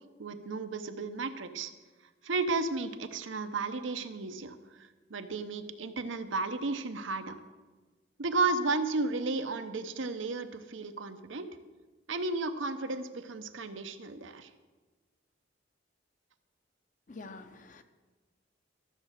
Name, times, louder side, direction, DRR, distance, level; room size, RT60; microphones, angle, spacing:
voice 1, 0.2-1.7 2.2-7.4 8.2-11.5 12.1-14.5, right 3 dB, 85° right, 9 dB, 0.8 m, -33 dB
voice 2, 17.1-17.8, left 3 dB, 40° left, 9 dB, 0.7 m, -46 dB
13.0 x 7.3 x 6.5 m, 1.3 s
head